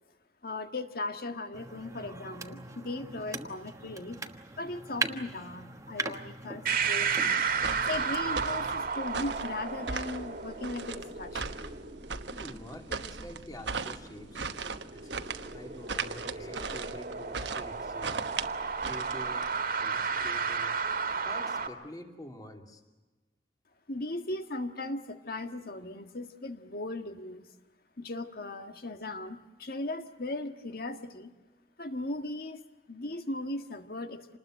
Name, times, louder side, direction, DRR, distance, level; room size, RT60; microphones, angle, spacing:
voice 1, 0.4-4.2 4.6-7.5 7.9-11.6 23.9-27.5 28.0-31.3 31.8-32.6 32.9-34.2, left 2 dB, 55° left, 7 dB, 1.7 m, -38 dB
sound 1, 1.5-8.9, right 3 dB, 20° right, 1.3 m, -40 dB
sound 2, 6.7-21.7, right 5 dB, 50° right, 2.0 m, -34 dB
sound 3, 7.6-19.6, right 5 dB, 80° right, 1.2 m, -38 dB
voice 2, 12.3-14.5 14.9-18.2 18.8-20.8 21.2-22.8, left 1 dB, 20° left, 3 dB, 2.7 m, -47 dB
27.5 x 20.0 x 7.7 m, 1.2 s
head